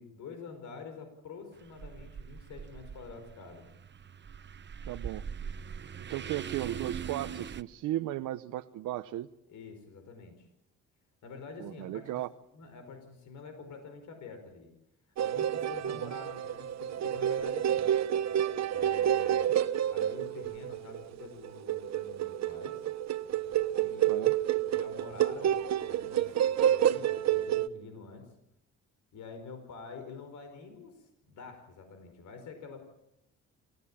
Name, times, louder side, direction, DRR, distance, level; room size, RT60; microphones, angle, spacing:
voice 1, 0.0-3.7 9.5-10.5 11.2-12.2 12.5-14.7 15.2-17.9 18.7-19.6 19.9-22.8 23.8-24.4 24.6-28.3 29.1-32.8, left 4 dB, 75° left, 6 dB, 5.1 m, -47 dB
sound 1, 1.6-7.6, right 7 dB, 35° right, 0.9 m, -42 dB
voice 2, 4.9-5.2 6.1-9.3 11.6-12.3 16.0-16.1 19.5-19.6 24.1-24.3, right 14 dB, 85° right, 7 dB, 0.9 m, -36 dB
sound 2, 15.2-27.7, right 11 dB, 60° right, 1.1 m, -29 dB
28.0 x 16.0 x 8.8 m, 0.86 s
cardioid pair, 90°, 30 cm